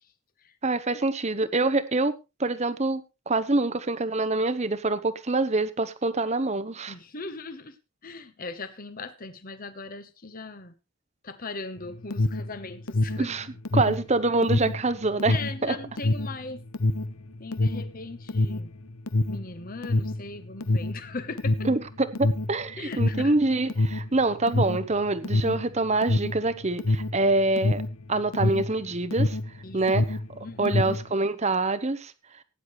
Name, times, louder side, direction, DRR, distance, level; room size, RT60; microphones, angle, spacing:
voice 1, 0.6-2.1 2.4-3.0 3.3-6.9 13.2-13.5 13.7-15.8 21.6-27.8 28.1-29.4 29.7-30.2 30.6-32.1, right 2 dB, 30° right, 0.9 m, -25 dB
voice 2, 6.9-7.8 8.0-10.7 11.2-13.3 15.3-16.6 17.4-18.7 19.3-21.7 22.8-23.4 29.6-30.1 30.4-30.8, left 3 dB, 40° left, 1.1 m, -39 dB
Alarm, 11.8-29.6 29.8-31.1, left 2 dB, 70° left, 1.0 m, -26 dB
17.5 x 10.0 x 3.2 m
head